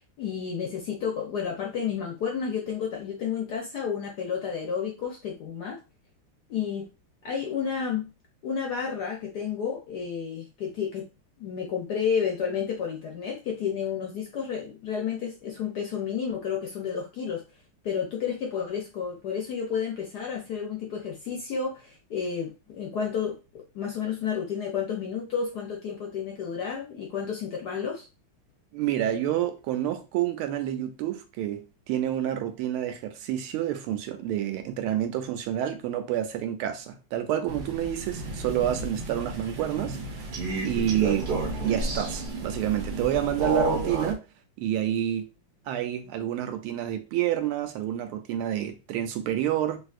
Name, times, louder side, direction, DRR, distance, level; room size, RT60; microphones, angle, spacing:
voice 1, 0.2-5.8 6.5-6.9 7.2-8.1 8.4-11.1 11.4-17.4 17.8-23.4 23.7-28.1, left 7 dB, 70° left, 0.9 m, -31 dB
voice 2, 28.7-40.2 40.6-41.3 41.6-44.2 44.6-45.3 45.7-49.8, right 11 dB, 90° right, 1.5 m, -28 dB
Crow, 37.5-44.1, right 2 dB, 65° right, 1.1 m, -31 dB
3.4 x 2.7 x 2.4 m
omnidirectional pair, 2.3 m